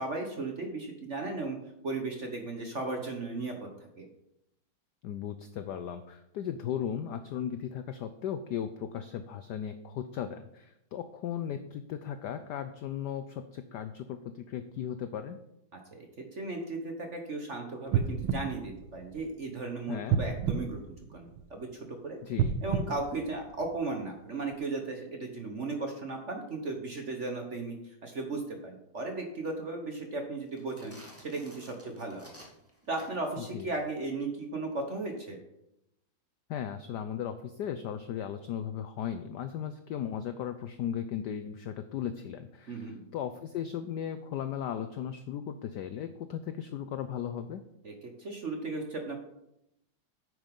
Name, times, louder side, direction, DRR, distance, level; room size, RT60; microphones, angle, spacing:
voice 1, 0.0-1.6 1.8-4.1 15.7-22.2 22.6-32.3 32.9-35.4 42.7-43.0 47.8-49.2, right 3 dB, 45° right, 3 dB, 1.0 m, -36 dB
voice 2, 5.0-15.4 19.9-20.2 22.2-22.6 33.4-33.7 36.5-47.6, left 9 dB, 85° left, 10 dB, 0.9 m, -36 dB
sound 1, 17.9-19.5 20.1-21.6 22.3-24.0 24.5-24.6, right 7 dB, 75° right, 1.5 m, -31 dB
sound 2, 30.5-33.4, equal, 5° right, 1.6 m, -53 dB
9.6 x 6.4 x 5.3 m, 0.83 s
omnidirectional pair, 2.4 m